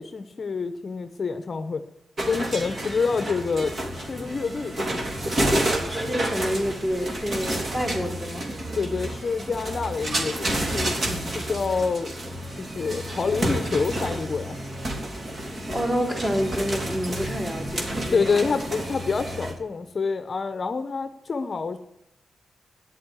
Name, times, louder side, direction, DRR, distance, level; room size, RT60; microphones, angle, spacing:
voice 1, 0.0-1.8 2.3-4.8 8.8-11.0 11.2-12.1 12.6-14.6 18.1-21.8, left 4 dB, 35° left, 10 dB, 1.0 m, -27 dB
sound 1, 2.2-19.5, right 1 dB, 40° right, 3.5 m, -30 dB
voice 2, 5.9-8.5 15.7-18.6, equal, 15° right, 2 dB, 3.8 m, -28 dB
14.0 x 10.5 x 9.8 m, 0.85 s
wide cardioid pair, 165°, 0 cm